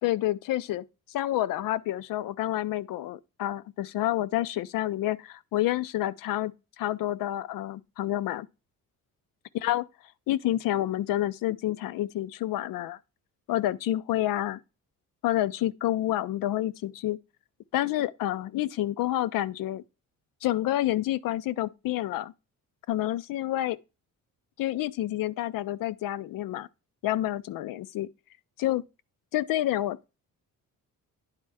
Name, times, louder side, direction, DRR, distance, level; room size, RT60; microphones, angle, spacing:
voice 1, 0.0-6.5 6.8-8.5 9.5-9.9 10.3-13.0 13.5-14.6 15.2-17.2 17.7-19.8 20.4-22.3 22.9-23.8 24.6-26.7 27.0-28.1 28.6-28.8 29.3-30.1, left 14 dB, 75° left, 0.5 m, -28 dB
9.9 x 4.4 x 4.7 m
cardioid pair, 130°, 34 cm